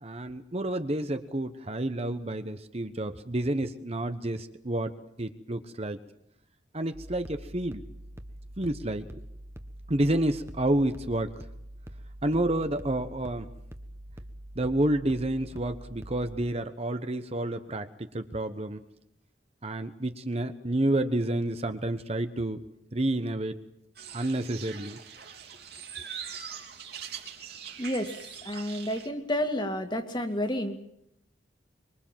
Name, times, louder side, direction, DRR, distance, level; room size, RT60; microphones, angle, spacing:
voice 1, 0.0-4.9 5.2-6.0 6.7-7.8 8.6-9.1 9.9-11.3 12.2-13.5 14.6-18.8 19.6-22.6 22.9-23.6 24.1-25.0, right 1 dB, 35° right, 9 dB, 1.1 m, -29 dB
sound 1, 6.9-16.5, right 1 dB, 15° right, 1.4 m, -45 dB
sound 2, 23.9-29.1, right 8 dB, 55° right, 3.4 m, -42 dB
voice 2, 27.8-28.1 28.4-30.8, left 1 dB, 25° left, 6 dB, 2.3 m, -30 dB
25.0 x 24.0 x 7.5 m, 0.77 s
head